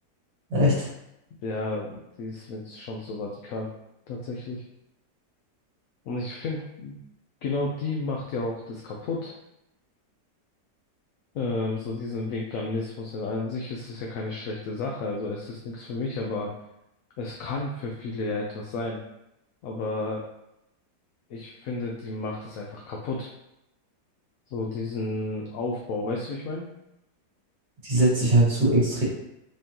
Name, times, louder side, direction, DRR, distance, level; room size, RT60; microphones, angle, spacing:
voice 1, 0.5-0.9 27.8-29.0, right 1 dB, 75° right, -7 dB, 2.4 m, -21 dB
voice 2, 1.4-3.7 4.1-4.6 6.1-7.0 7.4-9.3 11.3-16.5 17.2-19.0 19.6-20.3 21.3-23.3 24.5-26.7, left 3 dB, 65° left, -1 dB, 0.9 m, -32 dB
5.0 x 3.7 x 2.9 m, 0.85 s
omnidirectional pair, 1.8 m